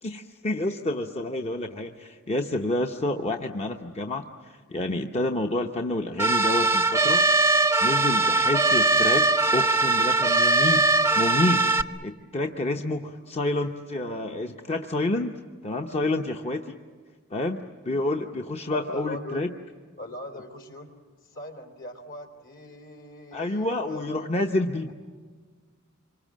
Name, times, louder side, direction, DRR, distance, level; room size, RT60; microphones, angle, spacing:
voice 1, 0.0-7.2 7.8-9.2 9.5-10.8 11.1-16.8 17.3-19.5 23.3-24.9, left 2 dB, 30° left, 4 dB, 0.8 m, -29 dB
sound 1, 6.2-11.8, right 3 dB, 10° right, 0.6 m, -21 dB
voice 2, 18.7-19.5 20.0-20.9 21.2-24.4, left 1 dB, 65° left, 4 dB, 3.3 m, -41 dB
27.0 x 24.5 x 7.5 m, 1.6 s
head